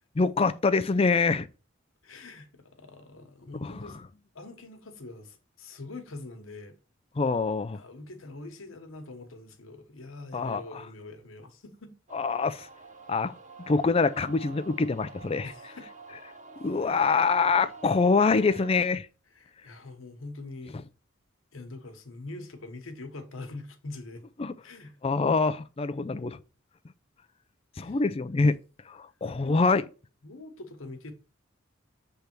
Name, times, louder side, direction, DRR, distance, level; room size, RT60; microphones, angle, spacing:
voice 1, 0.2-1.5 3.6-3.7 7.2-7.8 10.3-10.6 12.1-12.7 13.1-13.3 13.7-15.5 16.6-19.1 24.4-24.5 25.0-26.4 27.8-28.6 28.9-29.8, left 4 dB, 30° left, 0.4 m, -25 dB
voice 2, 2.0-4.0 4.3-6.8 7.7-11.9 15.4-15.9 16.8-17.2 19.3-20.8 21.5-24.2 24.6-25.0 27.8-28.0 29.4-29.6 30.2-31.1, left 2 dB, 85° left, 1.2 m, -44 dB
sound 1, 12.1-18.9, right 3 dB, 40° right, 0.7 m, -48 dB
6.7 x 3.4 x 4.5 m
head